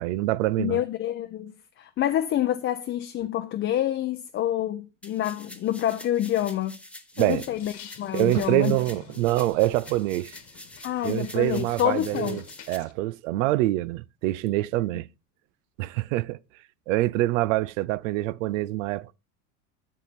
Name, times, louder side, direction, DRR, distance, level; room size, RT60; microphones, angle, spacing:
voice 1, 0.0-0.8 7.2-7.4 8.1-10.3 11.0-15.1 15.8-16.4 16.9-19.1, right 17 dB, 75° right, 0.5 m, -25 dB
voice 2, 0.6-6.8 7.2-8.8 10.8-12.4, left 12 dB, 35° left, 0.6 m, -27 dB
sound 1, 5.0-12.8, left 1 dB, 5° left, 1.0 m, -47 dB
sound 2, 7.5-12.9, left 9 dB, 50° left, 1.4 m, -48 dB
7.4 x 6.6 x 4.1 m
hypercardioid pair, 90°, 38 cm